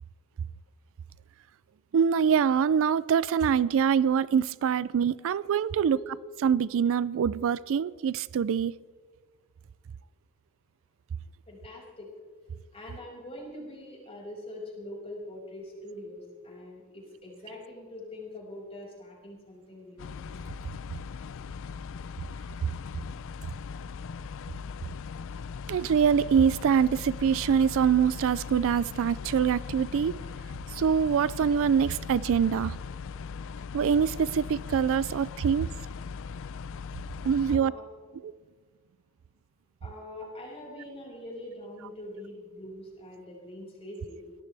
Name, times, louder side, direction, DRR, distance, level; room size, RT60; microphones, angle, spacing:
voice 1, 1.9-6.0 6.4-8.7 25.7-30.1 30.7-32.8 33.7-35.7 37.2-37.7 38.2-38.3, right 7 dB, 60° right, 0.3 m, -24 dB
voice 2, 5.7-6.0 11.5-12.1 12.7-20.1 37.5-37.8 39.8-44.2, left 1 dB, 25° left, 5.8 m, -43 dB
sound 1, 20.0-37.6, left 5 dB, 60° left, 0.4 m, -39 dB
23.5 x 17.5 x 3.4 m
head